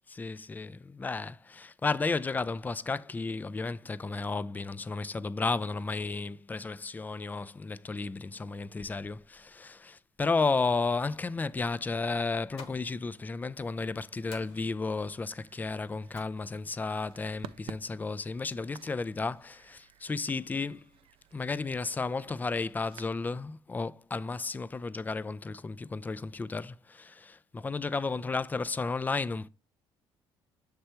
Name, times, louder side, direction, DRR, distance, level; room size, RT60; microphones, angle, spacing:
voice 1, 0.1-20.9 21.3-29.5, left 4 dB, 15° left, 0.3 m, -33 dB
sound 1, 12.2-18.3, left 5 dB, 70° left, 1.1 m, -56 dB
sound 2, 14.9-23.1, right 12 dB, 65° right, 0.3 m, -52 dB
6.7 x 3.3 x 4.3 m
cardioid pair, 90°, 10 cm